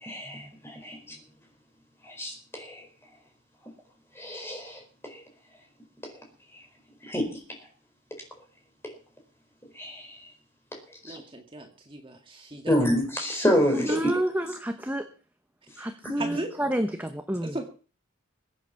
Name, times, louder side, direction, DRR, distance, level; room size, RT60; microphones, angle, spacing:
voice 1, 0.0-1.0 2.0-2.8 4.2-5.2 7.0-7.4 9.7-10.2 11.0-11.2 12.7-13.9 16.2-16.4, equal, 10° left, 2 dB, 4.7 m, -28 dB
voice 2, 11.0-12.8 13.9-14.2 15.8-16.5 17.4-17.7, right 1 dB, 25° right, 3 dB, 1.9 m, -36 dB
voice 3, 13.7-15.1 15.8-17.6, right 1 dB, 10° right, 6 dB, 1.1 m, -29 dB
22.5 x 8.3 x 5.9 m, 0.39 s
head